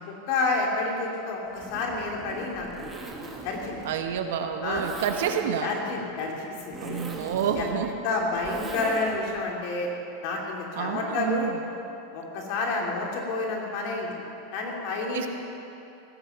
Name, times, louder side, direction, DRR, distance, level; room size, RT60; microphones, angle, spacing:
voice 1, 0.3-3.0 3.4-3.8 4.6-4.8 5.6-6.3 6.6-7.0 7.5-7.8 8.0-9.9 10.2-11.5 12.1-14.1 14.5-15.3, left 3 dB, 45° left, -1 dB, 2.6 m, -29 dB
Zipper (clothing), 1.5-9.4, right 3 dB, 10° right, 1.2 m, -40 dB
voice 2, 3.8-5.7 6.8-8.0 10.8-11.6 15.1-15.3, right 8 dB, 65° right, 6 dB, 1.1 m, -29 dB
17.0 x 8.7 x 7.1 m, 2.9 s
supercardioid pair, 175°, 0 cm